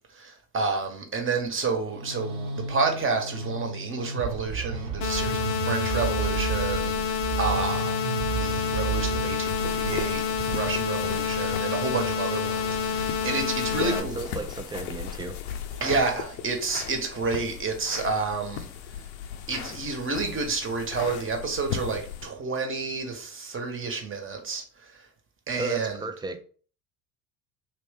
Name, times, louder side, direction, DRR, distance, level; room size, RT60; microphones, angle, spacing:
voice 1, 0.1-14.3 15.8-18.7 19.5-24.6 25.5-26.0, right 4 dB, 30° right, 1.2 m, -30 dB
sound 1, 1.6-13.4, right 6 dB, 70° right, 1.2 m, -33 dB
sound 2, 5.0-14.0, left 7 dB, 40° left, 0.7 m, -28 dB
sound 3, 9.5-22.3, left 9 dB, 75° left, 0.7 m, -37 dB
voice 2, 13.8-15.4 25.5-26.4, right 3 dB, 10° right, 0.5 m, -34 dB
3.1 x 3.0 x 3.5 m
hypercardioid pair, 70°, 43 cm